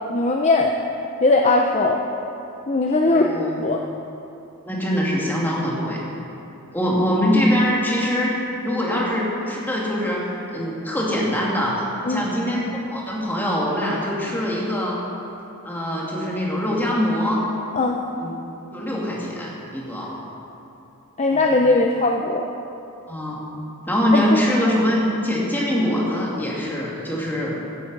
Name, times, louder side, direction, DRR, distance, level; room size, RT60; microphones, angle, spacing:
voice 1, 0.1-0.7 1.2-2.0 2.7-3.8 12.1-12.2 17.7-18.0 21.2-22.5 24.1-24.4, left 2 dB, 30° left, 2 dB, 0.6 m, -19 dB
voice 2, 3.0-3.6 4.6-6.0 6.7-8.3 8.6-10.2 10.5-11.7 12.1-15.0 15.6-17.4 18.2-18.3 18.7-20.1 21.3-21.5 23.1-23.4 23.9-27.6, equal, 10° left, -5 dB, 2.3 m, -23 dB
13.5 x 11.0 x 5.3 m, 2.9 s
head